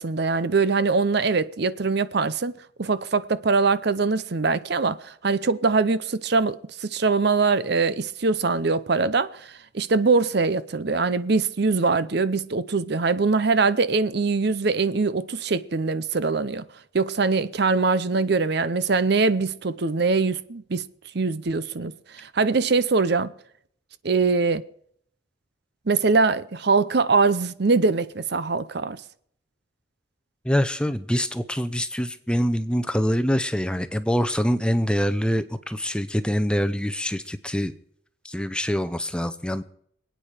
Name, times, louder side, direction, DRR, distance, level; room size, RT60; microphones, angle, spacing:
voice 1, 0.0-2.5 2.8-16.6 16.9-20.9 21.1-23.3 24.0-24.6 25.9-29.0, right 4 dB, 55° right, 0.7 m, -22 dB
voice 2, 30.4-37.7 38.2-39.6, equal, 5° left, 0.7 m, -25 dB
26.0 x 9.1 x 5.0 m
head